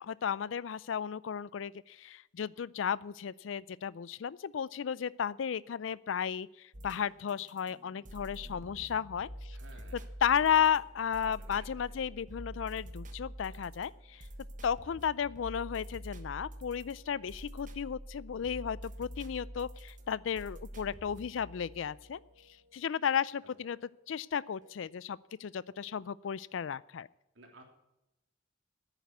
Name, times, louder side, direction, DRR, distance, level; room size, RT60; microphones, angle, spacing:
voice 1, 0.0-9.6 10.2-14.2 14.6-22.2 22.7-23.8 24.1-27.1, left 8 dB, 85° left, 21 dB, 0.4 m, -34 dB
sound 1, 6.7-23.7 24.6-24.7, equal, 45° right, 1.3 m, -47 dB
voice 2, 9.5-10.7 11.4-12.0 23.4-23.8 27.3-27.6, right 1 dB, 75° right, 2 dB, 3.3 m, -58 dB
10.5 x 9.1 x 9.4 m, 0.91 s
head